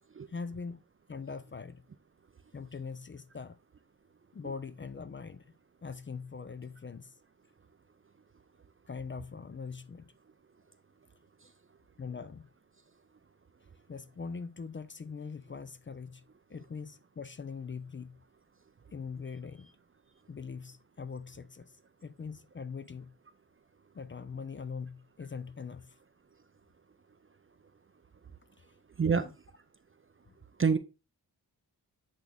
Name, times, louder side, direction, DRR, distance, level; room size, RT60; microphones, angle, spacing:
voice 1, 0.3-0.8 1.1-1.8 2.5-3.6 4.3-5.5 5.8-7.1 8.9-10.1 12.0-12.5 13.9-16.2 16.5-18.2 18.9-19.7 20.3-21.7 22.0-23.1 23.9-26.0 29.1-29.3 30.3-30.4, left 5 dB, 30° left, 0.4 m, -42 dB
voice 2, 29.0-29.3 30.6-30.8, right 5 dB, 30° right, 0.5 m, -26 dB
8.2 x 3.5 x 3.5 m
wide cardioid pair, 80°, 41 cm